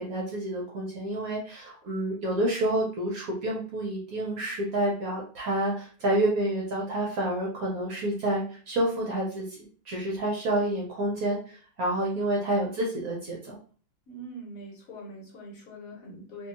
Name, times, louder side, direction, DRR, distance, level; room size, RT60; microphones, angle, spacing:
voice 1, 0.0-9.5 9.9-13.6, right 1 dB, 60° right, -3 dB, 1.0 m, -29 dB
voice 2, 14.1-16.5, right 1 dB, 55° left, -1 dB, 1.1 m, -43 dB
2.8 x 2.7 x 2.5 m, 0.41 s
omnidirectional pair, 2.0 m